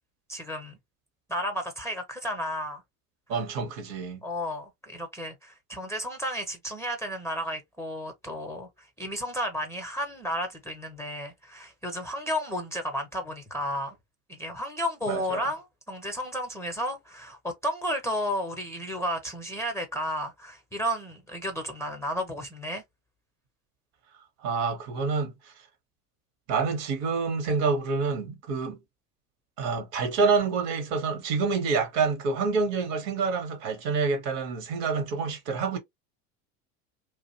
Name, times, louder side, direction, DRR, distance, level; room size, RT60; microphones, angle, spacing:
voice 1, 0.3-0.8 1.3-2.8 4.2-14.0 14.3-22.8, equal, 5° left, 0.6 m, -32 dB
voice 2, 3.3-4.2 15.1-15.4 24.4-25.3 26.5-28.8 29.6-35.8, right 4 dB, 55° right, 1.0 m, -27 dB
2.5 x 2.1 x 2.7 m
hypercardioid pair, 80°, 46 cm